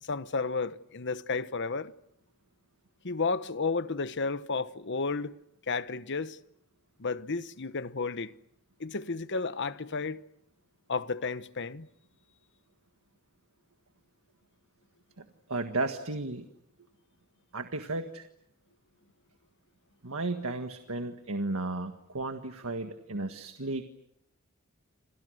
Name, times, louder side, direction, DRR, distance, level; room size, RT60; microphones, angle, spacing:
voice 1, 0.0-1.9 3.0-5.3 5.7-6.4 7.0-8.3 8.8-10.2 10.9-11.9, left 4 dB, 60° left, 1.1 m, -32 dB
voice 2, 15.5-16.5 17.5-18.3 20.0-23.8, right 2 dB, 85° right, 1.7 m, -34 dB
29.5 x 27.0 x 6.6 m
head